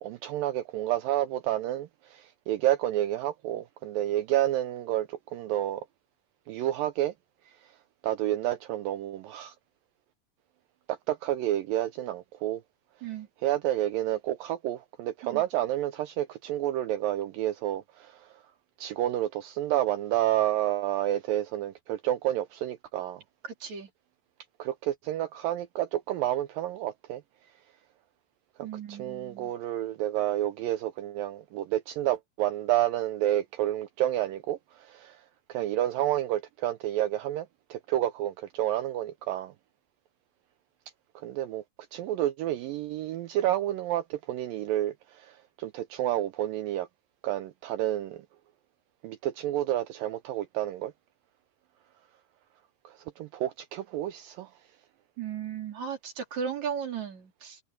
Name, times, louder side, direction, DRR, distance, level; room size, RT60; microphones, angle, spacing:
voice 1, 0.0-5.9 6.5-7.1 8.0-9.5 10.9-12.6 13.4-18.3 18.8-23.2 24.6-27.2 28.6-35.2 35.5-39.5 41.2-41.6 41.9-46.9 47.2-48.3 49.0-50.9 52.8-54.5, right 13 dB, 80° right, 2.0 m, -30 dB
voice 2, 23.4-23.9 28.6-29.5 55.2-57.6, right 7 dB, 45° right, 4.6 m, -36 dB
omnidirectional pair, 4.7 m